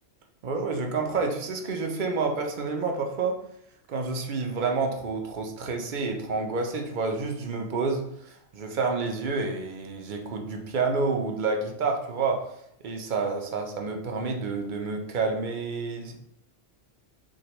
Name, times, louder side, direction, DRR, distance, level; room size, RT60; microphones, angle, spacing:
voice 1, 0.4-3.4 3.9-12.4 12.8-16.2, right 4 dB, 50° right, 3 dB, 0.6 m, -29 dB
6.2 x 2.2 x 3.0 m, 0.72 s
omnidirectional pair, 1.3 m